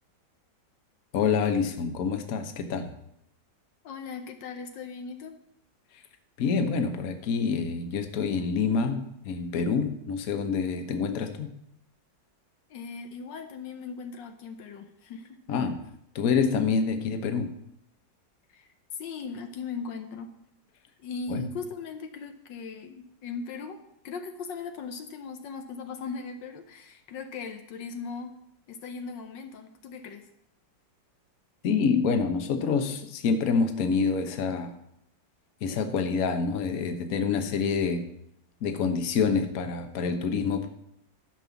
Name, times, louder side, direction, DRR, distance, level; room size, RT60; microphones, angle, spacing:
voice 1, 1.1-2.9 6.4-11.5 15.5-15.8 16.1-17.5 21.3-21.4 31.6-34.7 35.6-38.1 38.6-40.7, left 5 dB, 55° left, 7 dB, 1.4 m, -27 dB
voice 2, 3.8-5.4 12.7-15.4 18.5-20.3 21.0-28.3 28.7-30.3, left 5 dB, 75° left, 6 dB, 1.5 m, -38 dB
12.0 x 5.5 x 7.0 m, 0.78 s
omnidirectional pair, 2.0 m